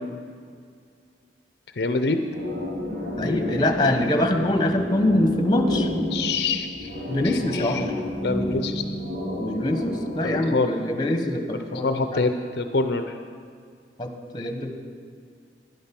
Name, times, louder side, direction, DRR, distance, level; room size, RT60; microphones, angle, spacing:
voice 1, 1.8-2.2 6.1-6.9 7.2-7.8 8.2-8.8 10.5-10.7 11.7-13.0, left 3 dB, 65° left, 8 dB, 0.6 m, -25 dB
sound 1, 2.3-10.4, left 1 dB, 75° right, 2.9 m, -30 dB
voice 2, 3.2-5.9 7.1-7.9 9.4-12.2 14.0-14.8, left 1 dB, 25° left, 5 dB, 1.1 m, -24 dB
12.0 x 10.5 x 6.0 m, 2.1 s
head